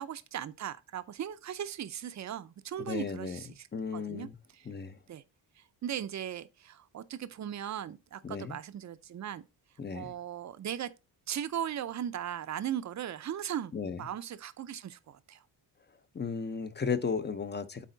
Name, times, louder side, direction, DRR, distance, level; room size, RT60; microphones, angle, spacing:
voice 1, 0.0-3.7 3.9-4.3 5.1-5.2 5.6-9.4 9.9-10.9 11.3-13.7 14.0-15.4, right 10 dB, 40° right, 0.6 m, -38 dB
voice 2, 2.8-3.4 3.7-4.3 4.6-5.0 8.2-8.6 9.8-10.1 13.7-14.1 16.1-17.8, left 5 dB, 25° left, 0.6 m, -35 dB
8.3 x 4.2 x 3.8 m
wide cardioid pair, 155°, 44 cm